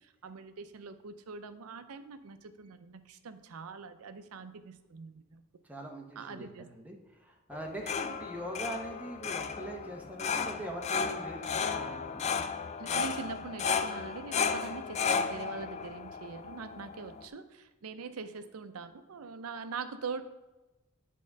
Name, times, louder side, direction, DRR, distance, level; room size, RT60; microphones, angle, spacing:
voice 1, 0.0-5.4 6.2-6.7 12.8-20.2, right 5 dB, 85° right, 10 dB, 0.6 m, -43 dB
voice 2, 5.6-12.3, right 1 dB, 5° right, 0 dB, 0.9 m, -42 dB
sound 1, 7.5-17.2, left 5 dB, 30° left, 0.3 m, -34 dB
8.6 x 3.7 x 5.2 m, 1.1 s
head